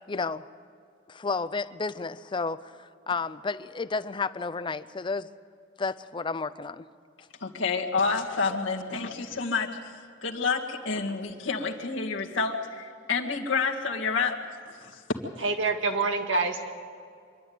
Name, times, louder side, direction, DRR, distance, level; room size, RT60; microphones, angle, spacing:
voice 1, 0.1-0.5 1.1-5.3 5.8-6.9, left 4 dB, 25° left, 14 dB, 0.5 m, -32 dB
voice 2, 7.4-9.9 10.2-14.3 14.8-15.0, left 4 dB, 90° left, 1 dB, 2.0 m, -29 dB
voice 3, 15.4-16.7, right 3 dB, 80° right, 5 dB, 1.8 m, -26 dB
26.0 x 12.0 x 9.4 m, 2.3 s
head